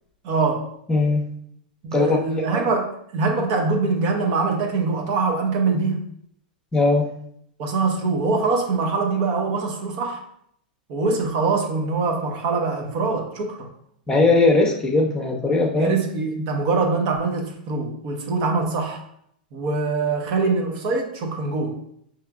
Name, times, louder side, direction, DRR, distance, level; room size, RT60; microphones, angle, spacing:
voice 1, 0.2-0.7 1.8-6.0 7.6-10.2 10.9-13.7 15.8-19.0 19.5-21.8, right 3 dB, 50° right, 2 dB, 0.9 m, -23 dB
voice 2, 0.9-1.2 1.9-2.6 6.7-7.1 14.1-16.0, left 3 dB, 15° left, 0 dB, 0.8 m, -19 dB
5.5 x 3.0 x 2.4 m, 0.70 s
hypercardioid pair, 115°, 5 cm